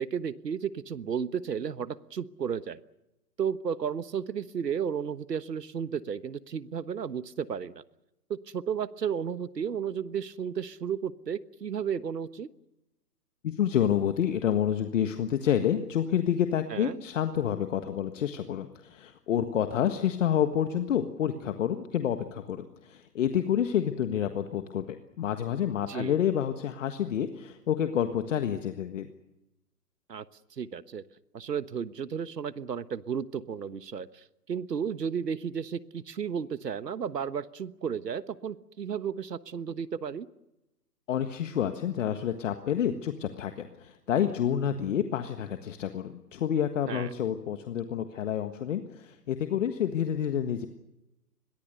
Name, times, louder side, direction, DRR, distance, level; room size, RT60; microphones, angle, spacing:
voice 1, 0.0-2.8 3.4-7.8 8.3-12.5 16.7-17.0 25.9-26.2 30.1-30.2 30.6-31.0 31.3-40.3 46.9-47.1, right 7 dB, 75° right, 15 dB, 1.3 m, -33 dB
voice 2, 13.4-24.9 25.2-29.1 41.1-50.7, left 9 dB, 50° left, 8 dB, 1.6 m, -28 dB
28.5 x 22.0 x 6.7 m, 0.92 s
figure-of-eight pair, 135°, 49 cm